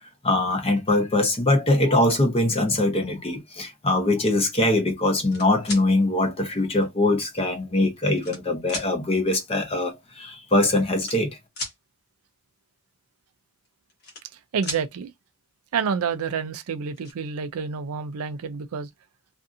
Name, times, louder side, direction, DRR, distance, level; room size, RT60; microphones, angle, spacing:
voice 1, 0.2-11.4, left 2 dB, 25° left, 0.7 m, -22 dB
sound 1, 5.1-5.8 6.8-6.9 7.7-8.4 8.7-8.9 10.0-10.1 10.3-10.5 10.9-11.8 13.6-14.4 14.6-14.8 16.3-16.4 16.7-17.1, left 2 dB, 45° left, 1.0 m, -35 dB
voice 2, 14.5-15.1 15.7-18.9, right 6 dB, 85° right, 0.4 m, -28 dB
2.6 x 2.5 x 2.4 m
head